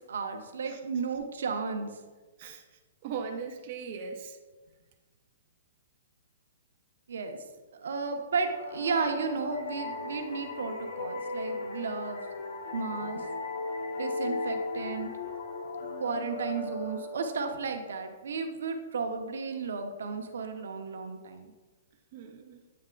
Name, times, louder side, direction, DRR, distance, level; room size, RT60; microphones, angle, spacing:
voice 1, 0.1-1.9 7.1-7.4 7.7-12.2 12.7-13.3 14.0-15.1 16.0-21.5, right 4 dB, 80° right, 6 dB, 0.8 m, -33 dB
voice 2, 3.0-4.4 22.1-22.6, right 6 dB, 35° right, 3 dB, 0.5 m, -39 dB
sound 1, 8.5-17.9, left 3 dB, 65° left, 0.9 m, -37 dB
8.6 x 3.3 x 3.8 m, 1.2 s
hypercardioid pair, 165°, 0 cm